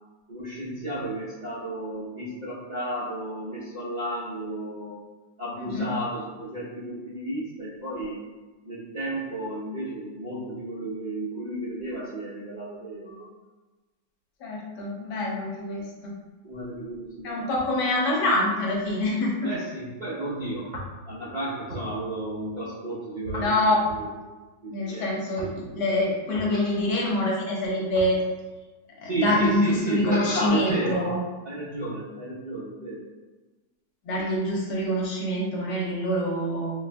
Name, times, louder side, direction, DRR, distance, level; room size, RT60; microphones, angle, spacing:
voice 1, 0.3-5.0 5.4-8.2 8.6-13.3 16.4-17.5 19.4-23.5 23.9-24.1 24.6-25.1 29.0-31.1 31.4-33.0, right 1 dB, 85° right, -10 dB, 0.3 m, -32 dB
voice 2, 5.6-5.9 14.4-16.1 17.2-19.3 20.2-20.3 23.4-23.8 24.7-28.2 29.0-31.2 34.0-36.7, left 1 dB, 70° left, -3 dB, 1.3 m, -26 dB
4.2 x 2.5 x 2.2 m, 1.2 s
omnidirectional pair, 2.0 m